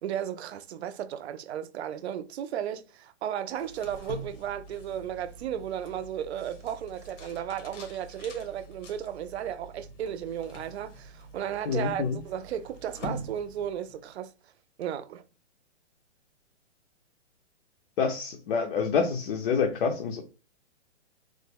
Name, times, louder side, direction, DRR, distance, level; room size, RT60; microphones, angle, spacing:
voice 1, 0.0-14.3 14.8-15.2, right 9 dB, 65° right, 0.5 m, -34 dB
sound 1, 3.5-14.0, equal, 85° left, 1.2 m, -45 dB
voice 2, 11.7-12.2 18.0-20.2, left 5 dB, 50° left, 0.6 m, -27 dB
3.2 x 2.0 x 3.5 m
hypercardioid pair, 150°, 36 cm